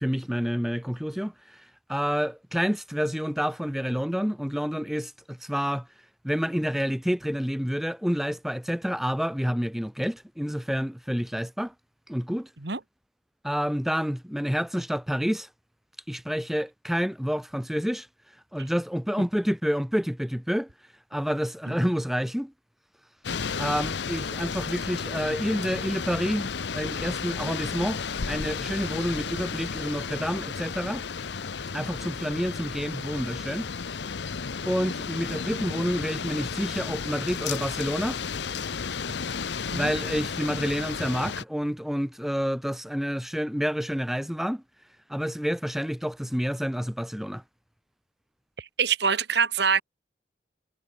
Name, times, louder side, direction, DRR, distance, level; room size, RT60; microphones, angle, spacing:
voice 1, 0.0-5.9 6.2-11.7 12.1-12.5 13.4-15.5 16.1-18.1 18.5-20.7 21.1-22.5 23.6-28.0 28.3-31.0 31.7-33.7 34.6-38.2 39.7-44.6 45.1-47.4, equal, ahead, 0.6 m, -28 dB
sound 1, 23.2-41.4, left 5 dB, 75° left, 0.7 m, -33 dB
voice 2, 48.6-49.8, right 6 dB, 75° right, 1.9 m, -25 dB
head